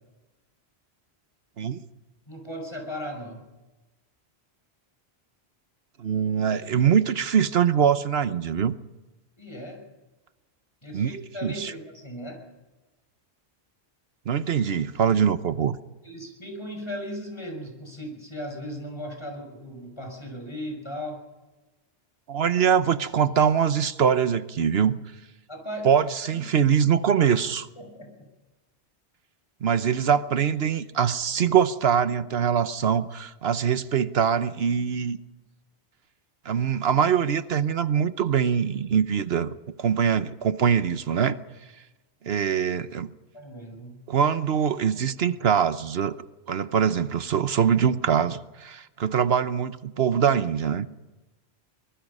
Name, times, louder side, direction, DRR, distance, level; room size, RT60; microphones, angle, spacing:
voice 1, 2.3-3.4 9.4-9.8 10.8-12.4 16.0-21.2 25.5-25.9 26.3-26.6 27.8-28.3 43.3-44.0, equal, 25° left, 5.9 m, -37 dB
voice 2, 6.0-8.8 10.9-11.1 11.4-11.7 14.3-15.8 22.3-25.0 25.8-27.7 29.6-35.2 36.4-39.5 39.8-41.4 42.2-43.1 44.1-46.2 46.5-50.9, right 7 dB, 70° right, 1.1 m, -23 dB
24.5 x 20.5 x 5.5 m
omnidirectional pair, 1.1 m